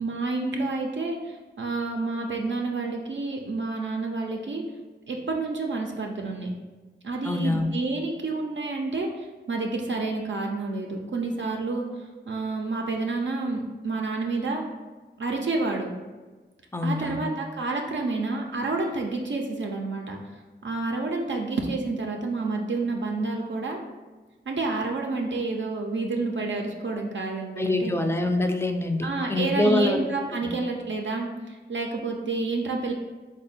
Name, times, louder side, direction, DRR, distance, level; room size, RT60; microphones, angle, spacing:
voice 1, 0.0-4.6 5.1-6.5 7.0-14.6 15.2-15.9 16.8-20.2 20.6-23.8 24.5-27.9 29.0-32.9, right 3 dB, 75° right, 1 dB, 0.4 m, -29 dB
voice 2, 7.2-7.7 16.7-17.2 27.6-30.0 30.4-30.5, left 2 dB, 15° left, 6 dB, 0.3 m, -25 dB
3.5 x 2.2 x 4.0 m, 1.3 s
wide cardioid pair, 50°, 19 cm